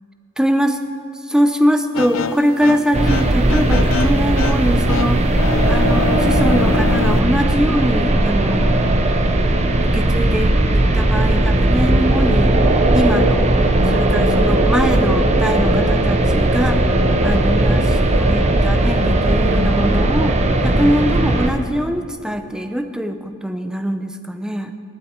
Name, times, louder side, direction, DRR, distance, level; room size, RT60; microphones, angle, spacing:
voice 1, 0.4-0.8 1.2-5.3 5.7-8.8 9.8-12.5 12.9-13.4 13.9-20.4 20.6-24.7, equal, 5° right, 7 dB, 0.6 m, -22 dB
sound 1, 1.9-7.2, left 4 dB, 65° left, 0.5 m, -25 dB
sound 2, 2.9-21.5, right 1 dB, 30° right, 0.8 m, -17 dB
18.0 x 9.1 x 4.5 m, 2.6 s
head